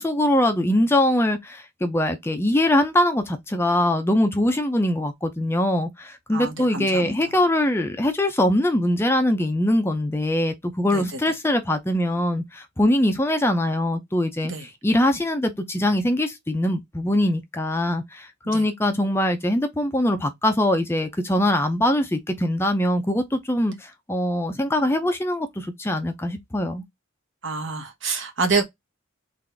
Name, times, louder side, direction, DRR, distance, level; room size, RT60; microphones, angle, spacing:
voice 1, 0.0-26.8, left 1 dB, 10° left, 0.5 m, -22 dB
voice 2, 6.3-7.2 10.9-11.0 14.4-14.6 18.5-18.7 27.4-28.6, right 4 dB, 65° right, 1.1 m, -27 dB
3.8 x 2.5 x 3.3 m
head